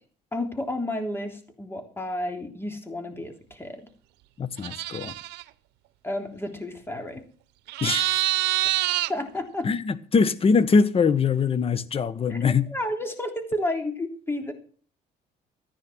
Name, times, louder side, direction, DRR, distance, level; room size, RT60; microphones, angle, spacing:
voice 1, 0.3-3.8 6.0-7.2 9.1-9.7 12.3-12.4 12.7-14.5, left 1 dB, 15° left, 5 dB, 3.4 m, -31 dB
voice 2, 4.4-5.1 7.8-8.2 9.6-12.6, left 5 dB, 35° left, 16 dB, 1.2 m, -22 dB
sound 1, 4.6-5.4 7.7-9.1, right 18 dB, 85° right, 0.8 m, -26 dB
14.5 x 9.8 x 6.1 m, 0.43 s
cardioid pair, 110°, 17 cm